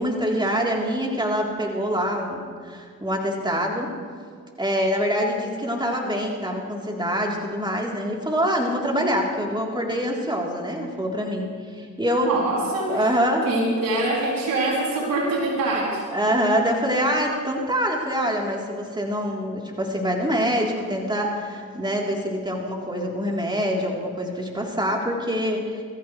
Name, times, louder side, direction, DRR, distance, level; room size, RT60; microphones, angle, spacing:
voice 1, 0.0-3.9 4.6-12.3 12.9-13.5 16.1-25.8, equal, 15° right, -1 dB, 3.5 m, -25 dB
voice 2, 12.2-13.2 13.4-16.1, right 2 dB, 85° right, -3 dB, 3.2 m, -24 dB
20.5 x 15.0 x 3.3 m, 2.1 s
supercardioid pair, 45°, 33 cm